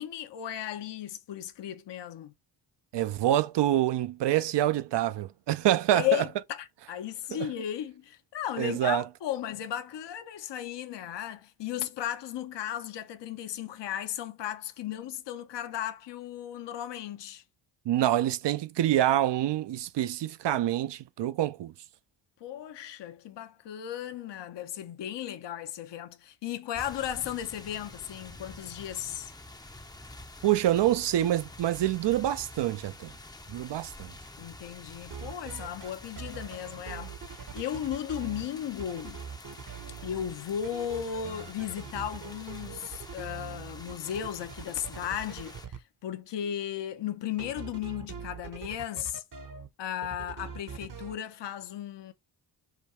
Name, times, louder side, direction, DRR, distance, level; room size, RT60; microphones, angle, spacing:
voice 1, 0.0-2.3 5.9-17.4 22.4-29.3 34.4-39.2 40.0-49.2 49.8-52.1, left 10 dB, 60° left, 0.8 m, -35 dB
voice 2, 2.9-6.1 7.4-7.5 8.6-9.0 17.9-21.7 30.4-33.1 33.5-34.1, right 13 dB, 60° right, 0.6 m, -26 dB
sound 1, 26.7-45.7, left 2 dB, 10° left, 0.6 m, -48 dB
sound 2, 35.0-35.9 36.2-38.5 38.8-40.3 40.6-45.8 47.4-49.7 50.0-51.2, right 7 dB, 40° right, 0.9 m, -42 dB
5.1 x 2.3 x 4.2 m
cardioid pair, 55°, 48 cm